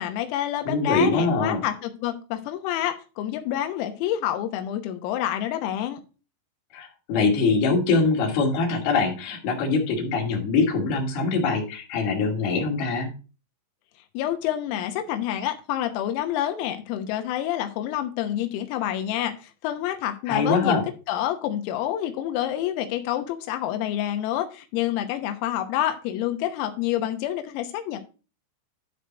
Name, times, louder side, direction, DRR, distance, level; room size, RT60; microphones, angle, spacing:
voice 1, 0.0-6.0 14.2-20.8 21.1-28.0, left 12 dB, 90° left, 3.8 m, -28 dB
voice 2, 0.7-1.6 6.7-13.1 20.3-20.8, left 4 dB, 55° left, 3.7 m, -23 dB
11.5 x 5.2 x 4.4 m
omnidirectional pair, 5.9 m